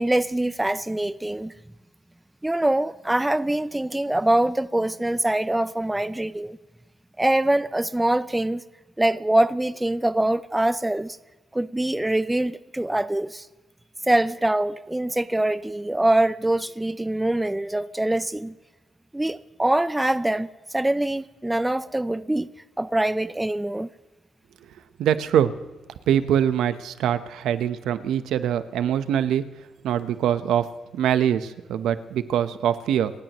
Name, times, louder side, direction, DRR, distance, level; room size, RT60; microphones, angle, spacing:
voice 1, 0.0-1.5 2.4-6.6 7.2-8.6 9.0-11.2 11.5-13.5 14.1-18.5 19.1-20.5 20.7-22.5 22.8-23.9, right 1 dB, 10° right, 0.4 m, -24 dB
voice 2, 25.0-25.5 26.1-29.4 29.8-30.7 30.9-33.1, right 9 dB, 85° right, 0.9 m, -23 dB
28.5 x 16.0 x 3.1 m
cardioid pair, 145°, 0 cm